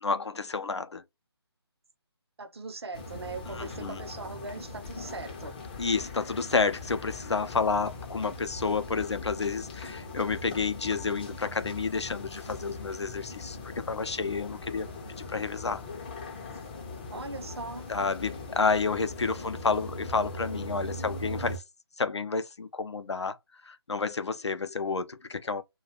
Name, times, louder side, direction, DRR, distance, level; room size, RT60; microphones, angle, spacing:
voice 1, 0.0-1.0 3.6-4.0 5.8-14.9 15.3-15.8 17.9-21.6 22.0-23.4 23.6-25.6, left 4 dB, 85° left, 0.5 m, -30 dB
voice 2, 2.4-5.6 17.1-17.9, right 3 dB, 65° right, 0.7 m, -40 dB
sound 1, 2.9-21.6, left 2 dB, 20° left, 0.4 m, -40 dB
2.4 x 2.2 x 2.9 m
figure-of-eight pair, 150°, 14 cm